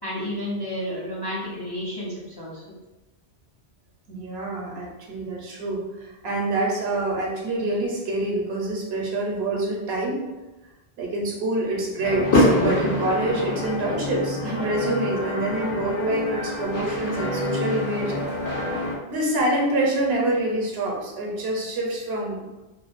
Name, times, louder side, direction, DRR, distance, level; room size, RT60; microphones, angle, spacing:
voice 1, 0.0-2.6, left 1 dB, 35° left, -7 dB, 0.4 m, -31 dB
voice 2, 4.1-10.2 11.0-18.1 19.1-22.6, right 2 dB, 75° right, -1 dB, 0.9 m, -26 dB
sound 1, 12.0-19.0, left 1 dB, 80° left, 0.9 m, -25 dB
2.4 x 2.2 x 2.4 m, 1.1 s
omnidirectional pair, 1.1 m